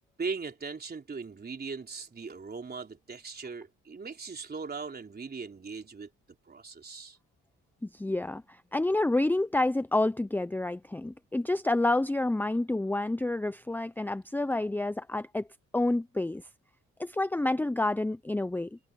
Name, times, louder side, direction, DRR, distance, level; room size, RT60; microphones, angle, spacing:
voice 1, 0.2-6.1 6.5-7.2, right 4 dB, 30° right, 3.8 m, -39 dB
voice 2, 7.8-15.5 15.7-16.4 17.0-18.8, left 2 dB, 5° left, 0.7 m, -29 dB
cardioid pair, 90°, 30 cm